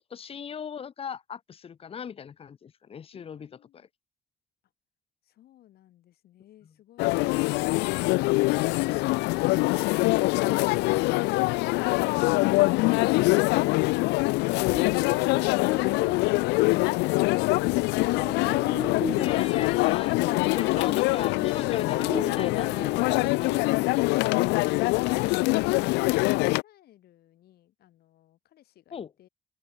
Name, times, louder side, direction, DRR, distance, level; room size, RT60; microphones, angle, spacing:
voice 1, 0.0-3.9 19.1-20.2 20.5-23.8 28.9-29.1, left 7 dB, 35° left, 0.8 m, -39 dB
voice 2, 3.1-3.9 5.2-10.1 24.6-29.3, left 13 dB, 65° left, 4.5 m, -57 dB
sound 1, 7.0-26.6, left 23 dB, 90° left, 0.4 m, -24 dB
Buzz, 14.7-24.2, left 1 dB, 5° left, 0.4 m, -40 dB
open air
cardioid pair, 110°, 17 cm